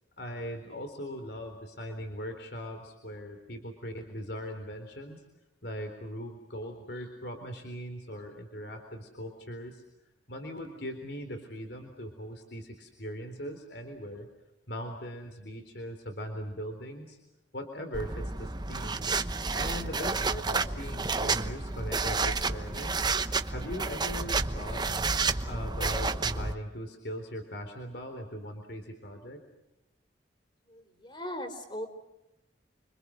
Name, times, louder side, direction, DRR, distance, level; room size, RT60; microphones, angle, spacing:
voice 1, 0.2-5.2 5.6-9.8 10.3-14.3 14.7-17.2 17.5-19.1 19.5-23.1 23.5-24.9 25.5-29.4, equal, 60° left, 5 dB, 3.8 m, -40 dB
sound 1, 17.9-26.5, right 4 dB, 20° right, 1.0 m, -30 dB
voice 2, 30.7-31.9, equal, 25° left, 7 dB, 4.2 m, -39 dB
29.5 x 25.0 x 6.5 m, 0.95 s
head